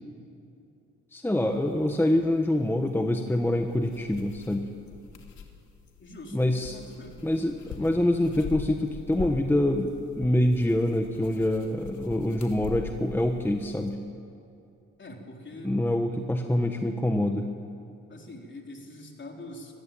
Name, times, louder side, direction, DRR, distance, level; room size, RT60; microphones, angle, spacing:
voice 1, 1.1-4.7 6.3-6.8 7.2-14.0 15.6-17.5, left 1 dB, 5° left, 4 dB, 1.3 m, -25 dB
sound 1, 1.5-13.9, left 6 dB, 70° left, 2.8 m, -43 dB
voice 2, 6.0-7.2 15.0-15.7 18.1-19.7, left 1 dB, 40° left, 1 dB, 3.9 m, -44 dB
25.5 x 15.0 x 9.1 m, 2.6 s
cardioid pair, 90°, 30 cm